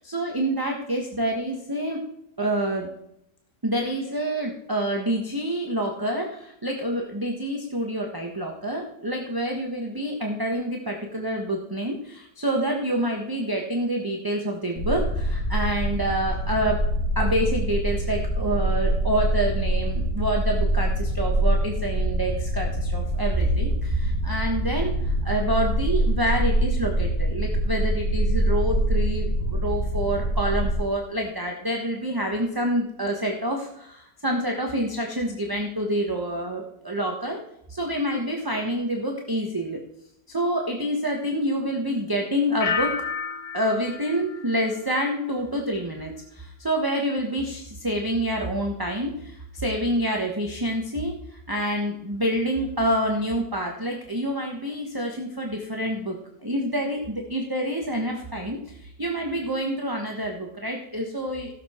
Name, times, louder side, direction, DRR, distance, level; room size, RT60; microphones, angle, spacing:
voice 1, 0.0-2.0 2.4-2.9 3.6-16.8 17.1-37.4 37.7-39.8 40.3-42.9 43.5-51.1 51.5-56.2 56.4-61.5, right 1 dB, 15° right, 0 dB, 1.0 m, -27 dB
sound 1, 14.8-30.7, right 1 dB, 40° left, 4.8 m, -25 dB
sound 2, 42.6-45.4 45.8-46.3, left 5 dB, 75° left, 0.4 m, -32 dB
16.0 x 6.9 x 4.4 m, 0.78 s
omnidirectional pair, 1.9 m